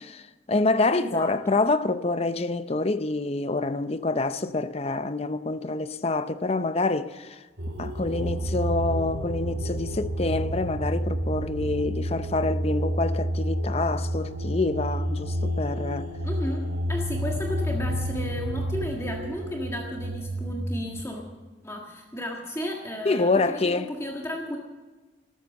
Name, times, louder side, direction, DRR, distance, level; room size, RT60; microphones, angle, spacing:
voice 1, 0.5-7.4 7.8-16.1 23.1-23.9, left 3 dB, 30° left, 0.6 m, -26 dB
voice 2, 1.0-1.6 16.2-21.2 21.6-24.6, equal, 15° left, 1.6 m, -34 dB
sound 1, 7.6-21.0, equal, 75° right, 2.6 m, -30 dB
13.0 x 13.0 x 7.2 m
head